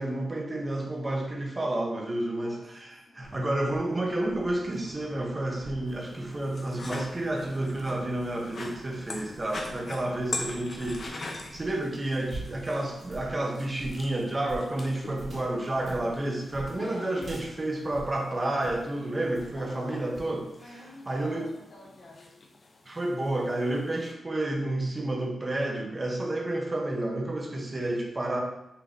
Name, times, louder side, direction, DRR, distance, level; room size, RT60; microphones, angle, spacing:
voice 1, 0.0-20.8 21.1-21.4 22.9-28.4, right 1 dB, 25° right, 1 dB, 0.6 m, -30 dB
voice 2, 2.2-3.7 16.7-17.4 19.5-20.0 20.5-22.5, left 1 dB, 65° left, -3 dB, 1.3 m, -48 dB
Wind / Thunder / Rain, 3.2-11.5, right 1 dB, 70° right, 1.4 m, -49 dB
sound 1, 5.9-24.1, left 2 dB, 40° left, 0.5 m, -44 dB
sound 2, 9.3-18.9 19.3-19.7 20.1-20.4, right 2 dB, 45° right, 1.6 m, -45 dB
5.7 x 2.5 x 3.5 m, 0.86 s
wide cardioid pair, 160°, 0 cm